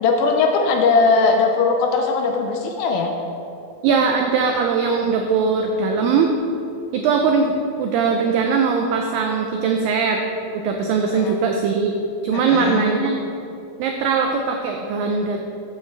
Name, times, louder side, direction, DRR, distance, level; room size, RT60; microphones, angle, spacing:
voice 1, 0.0-3.1 11.1-11.3 12.3-12.8, left 4 dB, 85° left, 3 dB, 2.2 m, -19 dB
voice 2, 3.8-6.3 6.9-7.5 7.8-10.2 10.5-13.2 13.8-15.4, right 5 dB, 90° right, 3 dB, 1.9 m, -20 dB
12.5 x 7.4 x 3.2 m, 2.7 s
omnidirectional pair, 4.6 m